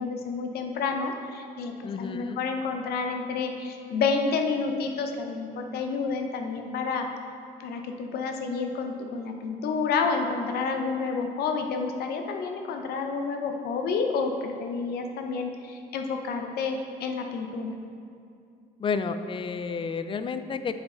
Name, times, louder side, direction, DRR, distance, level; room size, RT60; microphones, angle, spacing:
voice 1, 0.0-7.1 7.6-17.8, left 4 dB, 70° left, 4 dB, 0.8 m, -29 dB
voice 2, 1.8-2.4 18.8-20.7, left 5 dB, 30° left, 10 dB, 0.4 m, -31 dB
8.7 x 4.9 x 3.8 m, 2.4 s
cardioid pair, 110°, 17 cm